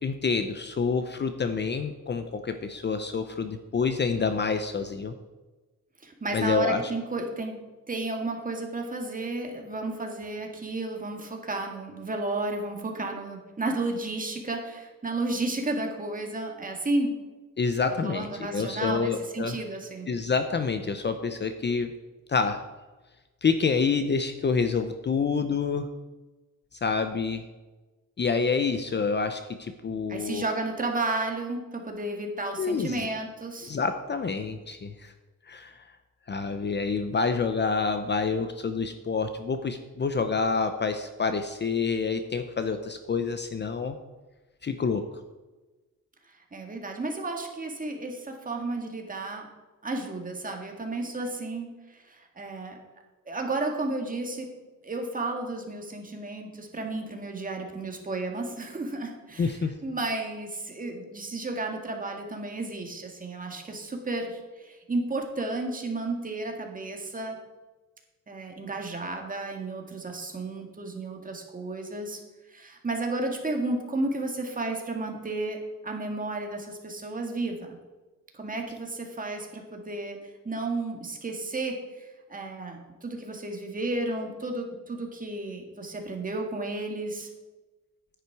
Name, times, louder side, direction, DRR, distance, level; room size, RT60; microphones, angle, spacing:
voice 1, 0.0-5.1 6.3-6.8 17.6-19.6 20.1-21.9 22.3-22.6 23.4-25.9 26.7-27.4 28.2-30.4 32.6-33.1 33.6-35.1 35.5-35.9 36.3-44.0 44.6-45.1 59.4-59.7, left 5 dB, 35° left, 8 dB, 0.7 m, -27 dB
voice 2, 6.0-7.6 7.9-17.1 18.0-20.1 30.1-33.7 46.3-49.5 49.8-52.8 53.3-54.5 54.8-67.4 68.3-72.2 72.5-75.6 75.8-77.8 78.3-87.3, right 2 dB, 25° right, 2 dB, 2.0 m, -32 dB
10.0 x 9.9 x 4.7 m, 1.2 s
cardioid pair, 130°, 32 cm